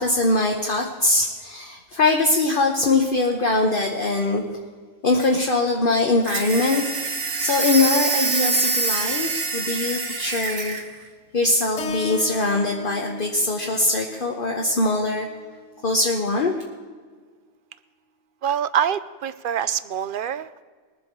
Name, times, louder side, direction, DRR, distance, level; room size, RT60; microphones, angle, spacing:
voice 1, 0.0-4.6 5.0-6.8 7.4-10.8 11.3-15.3 15.8-16.5, left 2 dB, 50° left, 1 dB, 1.2 m, -22 dB
sound 1, 6.2-10.9, right 4 dB, 75° right, 1.5 m, -25 dB
Keyboard (musical), 11.8-16.0, left 3 dB, 85° left, 1.2 m, -38 dB
voice 2, 18.4-20.6, right 9 dB, 60° right, 15 dB, 0.6 m, -25 dB
21.0 x 7.7 x 4.6 m, 1.5 s
omnidirectional pair, 1.2 m